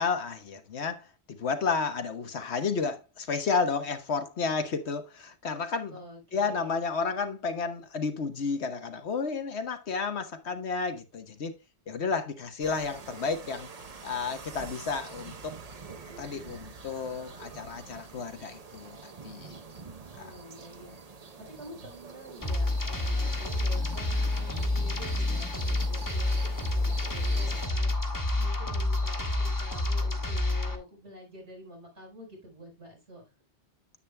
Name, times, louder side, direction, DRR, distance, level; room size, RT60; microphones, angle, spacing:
voice 1, 0.0-5.9 6.3-11.6 11.9-13.7 14.0-15.6 16.2-19.6, left 5 dB, 75° left, 1.4 m, -32 dB
voice 2, 5.9-6.8 20.1-33.2, equal, 80° right, 4.6 m, -48 dB
sound 1, 12.6-27.7, right 4 dB, 40° right, 0.8 m, -46 dB
sound 2, 22.4-30.8, left 2 dB, 20° left, 1.3 m, -28 dB
9.9 x 8.4 x 2.2 m
omnidirectional pair, 1.1 m